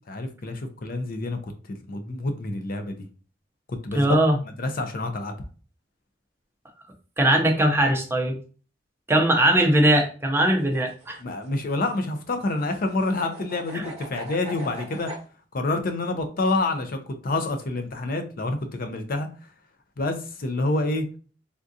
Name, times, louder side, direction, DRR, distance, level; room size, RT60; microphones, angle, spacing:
voice 1, 0.1-1.4 1.7-3.1 3.8-4.2 4.6-5.3 11.2-15.1 15.5-19.3 20.0-21.0, left 2 dB, 50° left, 0.5 m, -27 dB
voice 2, 3.9-4.4 7.2-8.4 9.1-11.2 13.7-13.8, right 1 dB, 15° right, 0.6 m, -20 dB
sound 1, 10.5-15.2, equal, 40° right, 0.9 m, -41 dB
3.6 x 2.4 x 2.6 m
head